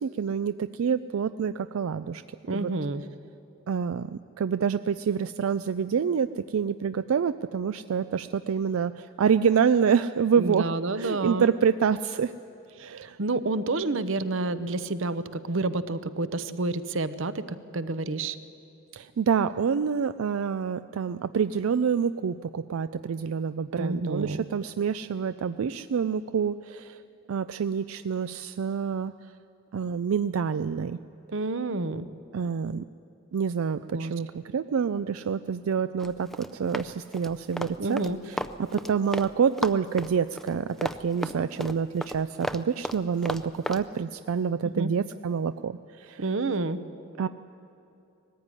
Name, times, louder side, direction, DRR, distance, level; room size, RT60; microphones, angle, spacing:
voice 1, 0.0-2.2 2.5-2.7 3.7-10.7 11.0-12.3 12.8-13.2 18.9-27.0 27.3-29.1 29.7-31.0 32.3-32.8 33.3-38.0 38.3-46.2 47.2-47.3, right 6 dB, 85° right, 12 dB, 0.4 m, -27 dB
voice 2, 2.5-3.0 10.4-11.5 12.8-18.4 23.8-24.5 31.3-32.1 33.9-34.1 37.8-38.2 44.6-44.9 46.2-46.8, right 2 dB, 65° right, 13 dB, 0.8 m, -29 dB
Run, 36.0-39.3 39.6-43.8, equal, ahead, 0.4 m, -34 dB
19.5 x 15.0 x 9.7 m, 2.7 s
head